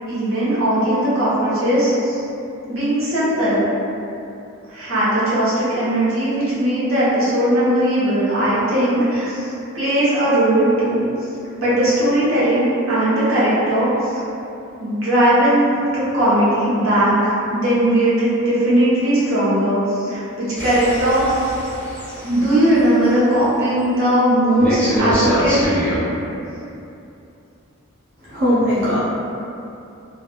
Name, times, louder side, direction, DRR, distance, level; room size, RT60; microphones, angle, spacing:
voice 1, 0.1-2.2 2.7-3.7 4.7-11.0 11.6-14.1 14.8-21.4 22.2-25.6, right 1 dB, 75° right, -11 dB, 1.1 m, -18 dB
sound 1, 20.6-22.7 24.6-26.0, equal, 5° left, 0.6 m, -24 dB
voice 2, 28.3-29.0, equal, 45° right, -12 dB, 0.6 m, -18 dB
3.0 x 2.4 x 2.3 m, 2.7 s
head